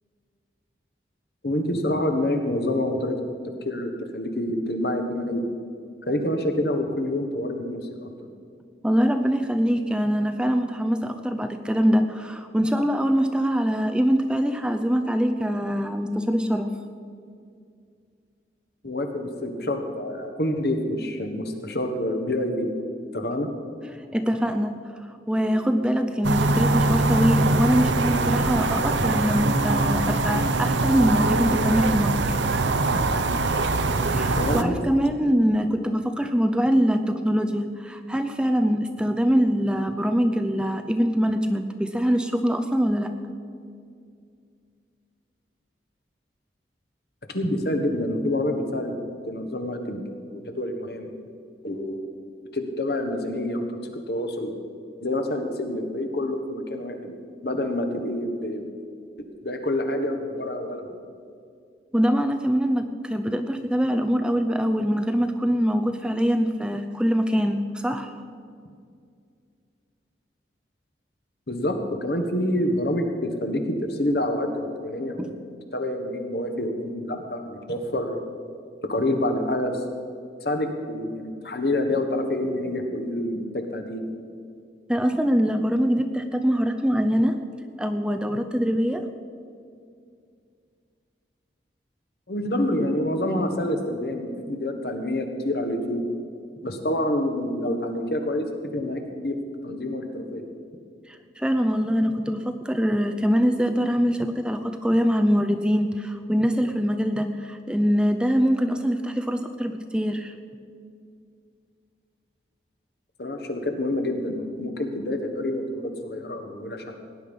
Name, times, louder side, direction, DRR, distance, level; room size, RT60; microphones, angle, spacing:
voice 1, 1.4-3.2 3.6-5.5 6.1-8.1 18.8-22.7 23.1-23.5 32.9-33.0 34.4-34.9 47.3-48.9 49.3-50.0 50.3-51.1 51.6-52.0 52.5-54.5 55.0-57.1 57.4-58.6 59.4-60.9 71.5-75.4 75.7-78.2 78.9-79.9 80.4-84.0 92.3-96.1 96.6-98.5 98.7-99.4 99.6-100.5 113.2-116.9, left 1 dB, 60° left, 5 dB, 1.5 m, -27 dB
voice 2, 8.8-16.7 24.1-32.4 34.1-43.1 61.9-68.1 75.2-75.3 84.9-87.4 87.8-89.0 101.1-110.3, equal, 5° right, 6 dB, 0.5 m, -23 dB
sound 1, 26.2-34.6, right 2 dB, 90° right, 0.9 m, -22 dB
18.0 x 10.0 x 5.4 m, 2.3 s
head